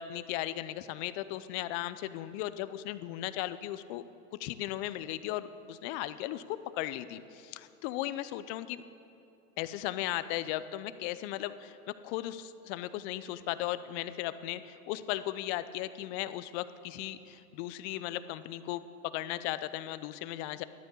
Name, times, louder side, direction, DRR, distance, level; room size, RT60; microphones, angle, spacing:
voice 1, 0.0-4.0 4.4-8.8 9.6-11.8 12.0-18.8 19.1-20.6, left 14 dB, 50° left, 14 dB, 0.8 m, -36 dB
12.0 x 10.5 x 8.4 m, 2.8 s
hypercardioid pair, 95°, 46 cm